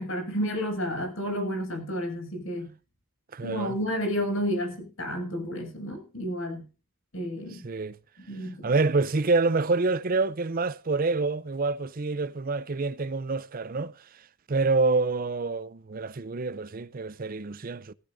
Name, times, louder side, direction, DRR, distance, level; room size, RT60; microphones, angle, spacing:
voice 1, 0.0-2.7 3.4-6.6 7.1-7.6 8.3-8.7, equal, 65° left, 6.8 m, -31 dB
voice 2, 3.3-3.8 7.5-8.0 8.6-13.9 14.5-17.9, right 3 dB, 40° right, 0.5 m, -27 dB
18.5 x 15.5 x 2.7 m
head